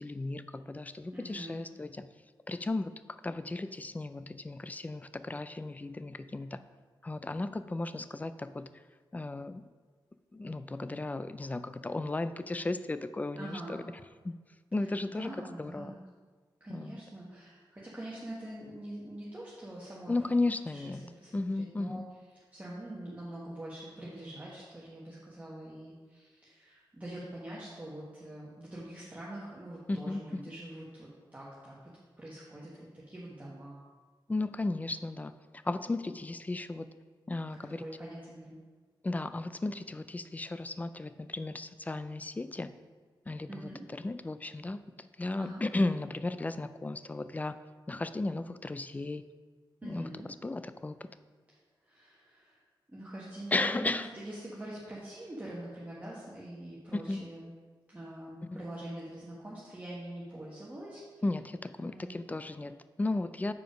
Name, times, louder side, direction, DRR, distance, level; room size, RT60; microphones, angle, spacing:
voice 1, 0.0-2.1 2.5-2.9 3.2-6.6 7.0-8.7 9.1-9.6 10.3-13.6 14.2-14.3 14.7-15.9 16.7-17.0 20.1-21.1 21.3-22.0 29.9-30.2 34.3-35.3 35.6-36.9 37.3-37.8 39.0-42.7 43.3-47.6 47.9-49.2 49.8-50.1 50.4-51.0 53.5-54.1 56.9-57.2 58.5-58.6 61.2-63.5, left 2 dB, 20° left, 12 dB, 0.3 m, -35 dB
voice 2, 1.1-1.6 13.3-13.8 14.8-16.0 16.6-20.1 20.7-22.0 22.5-31.7 32.2-33.8 37.7-38.6 43.5-43.8 45.4-45.6 49.8-50.3 51.8-52.6 52.9-57.5 57.9-61.2 61.8-62.2, right 1 dB, 20° right, -6 dB, 1.3 m, -44 dB
7.1 x 4.9 x 5.1 m, 1.4 s
wide cardioid pair, 90°, 8 cm